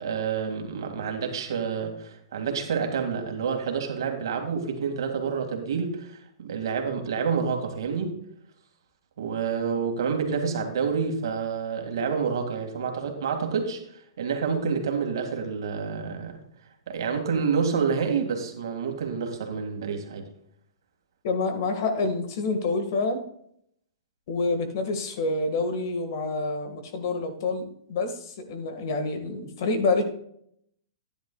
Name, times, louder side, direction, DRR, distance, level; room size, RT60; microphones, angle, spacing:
voice 1, 0.0-6.1 6.4-8.2 9.2-13.8 14.2-16.4 16.9-20.3, right 6 dB, 65° right, 4 dB, 2.1 m, -28 dB
voice 2, 21.2-23.2 24.3-30.0, left 3 dB, 45° left, 7 dB, 1.7 m, -27 dB
12.5 x 10.5 x 2.3 m, 0.70 s
hypercardioid pair, 165°, 3 cm